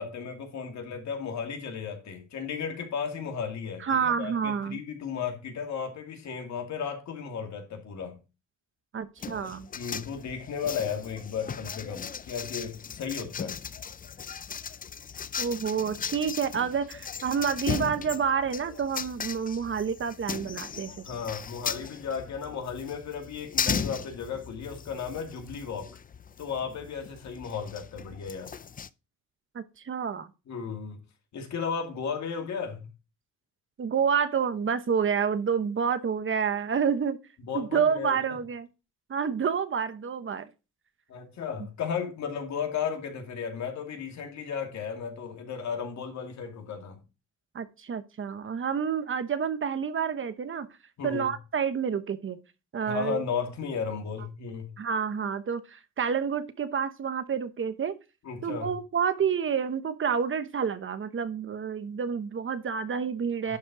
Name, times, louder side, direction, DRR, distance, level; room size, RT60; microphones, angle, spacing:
voice 1, 0.0-8.2 9.8-13.5 21.0-25.9 26.4-28.5 30.5-31.0 31.3-32.9 37.5-38.2 41.1-47.0 51.0-51.3 52.8-54.7 58.2-58.7 63.5-63.6, left 6 dB, 65° left, 2.4 m, -34 dB
voice 2, 3.8-4.8 8.9-9.7 15.4-21.0 29.5-30.3 33.8-37.2 37.5-38.7 39.1-40.5 47.5-50.7 51.0-52.4 52.7-53.2 54.8-58.0 58.4-63.6, right 7 dB, 40° right, 1.0 m, -29 dB
sound 1, 9.2-28.9, left 7 dB, 30° left, 0.5 m, -37 dB
11.5 x 4.3 x 4.8 m
cardioid pair, 90°, 30 cm